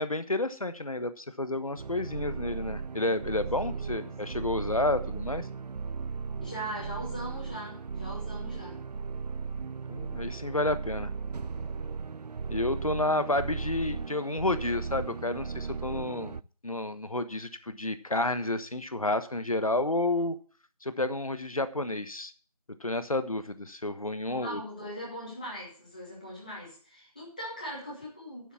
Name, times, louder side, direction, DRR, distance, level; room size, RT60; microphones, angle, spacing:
voice 1, 0.0-5.5 9.9-11.1 12.5-16.4 16.6-20.4 20.8-22.3 22.8-24.6, left 2 dB, 60° left, 11 dB, 1.2 m, -30 dB
sound 1, 1.8-16.4, right 5 dB, 85° right, 0.4 m, -36 dB
voice 2, 3.7-4.4 6.4-8.8 24.2-28.5, equal, 10° left, -6 dB, 2.2 m, -40 dB
10.5 x 7.1 x 6.8 m, 0.41 s
figure-of-eight pair, 175°, 20 cm